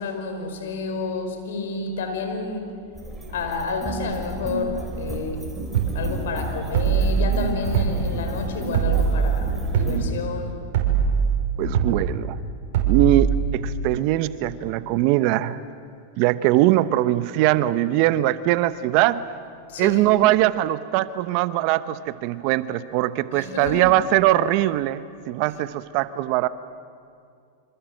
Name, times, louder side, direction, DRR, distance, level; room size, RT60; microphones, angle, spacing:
voice 1, 0.0-2.8 3.3-5.5 5.9-10.6 19.7-20.1 23.3-23.9, left 4 dB, 80° left, 6 dB, 5.1 m, -30 dB
sound 1, 2.9-10.0, right 1 dB, 15° right, 4.5 m, -32 dB
sound 2, 5.7-6.0 6.7-7.1 7.7-8.0 8.7-9.1 9.7-10.0 10.7-11.1 11.7-12.0 12.7-13.1, right 8 dB, 70° right, 5.4 m, -21 dB
voice 2, 11.6-12.4 12.9-15.6 16.2-19.2 19.8-26.5, right 15 dB, 50° right, 14 dB, 0.9 m, -21 dB
26.5 x 26.5 x 7.8 m, 2.3 s
hypercardioid pair, 125°, 0 cm